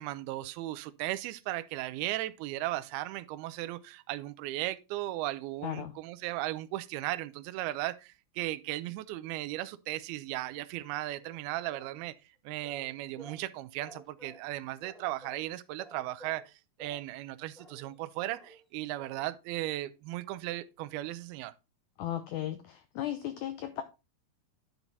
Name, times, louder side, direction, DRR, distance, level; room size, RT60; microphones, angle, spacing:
voice 1, 0.0-12.1 12.5-21.5, right 16 dB, 85° right, 2.5 m, -36 dB
voice 2, 5.6-5.9 22.0-23.8, left 12 dB, 80° left, 1.7 m, -36 dB
sound 1, 11.2-12.0 12.6-13.5 13.8-14.5 14.8-15.5 15.8-16.5 16.8-17.1 17.6-17.9 18.3-18.7 19.0-19.3, right 1 dB, ahead, 0.4 m, -53 dB
10.5 x 5.9 x 4.0 m
omnidirectional pair, 4.4 m